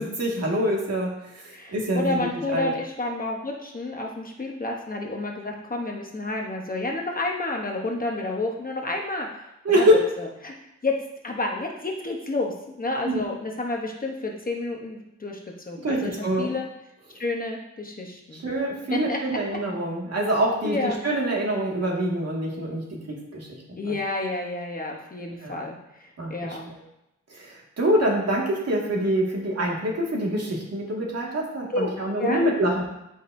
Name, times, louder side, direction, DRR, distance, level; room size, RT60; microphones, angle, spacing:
voice 1, 0.0-1.4 1.7-2.3 2.5-2.7 9.7-10.0 13.0-13.2 15.8-16.5 18.3-23.6 23.9-24.0 25.4-25.6 26.2-26.8 27.3-32.8, right 1 dB, 55° right, -2 dB, 1.9 m, -25 dB
voice 2, 1.5-9.3 9.7-10.5 10.8-15.4 15.7-16.7 17.1-18.4 18.9-19.2 20.6-21.0 23.8-26.7 31.7-31.9 32.2-32.5, left 2 dB, 30° left, 0 dB, 0.9 m, -30 dB
12.5 x 5.3 x 2.6 m, 0.87 s
wide cardioid pair, 160°, 31 cm